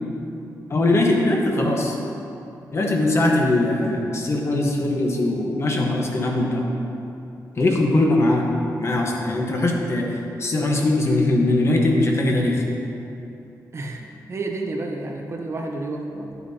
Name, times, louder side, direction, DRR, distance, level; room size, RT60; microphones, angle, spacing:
voice 1, 0.7-1.9 2.7-6.6 7.6-8.4 8.8-10.1 10.4-12.6, left 2 dB, 40° left, 0 dB, 1.2 m, -21 dB
voice 2, 1.5-1.9 7.9-8.2 13.7-16.4, right 2 dB, 40° right, 2 dB, 0.9 m, -31 dB
11.0 x 8.2 x 2.8 m, 2.7 s
cardioid pair, 110°, 7 cm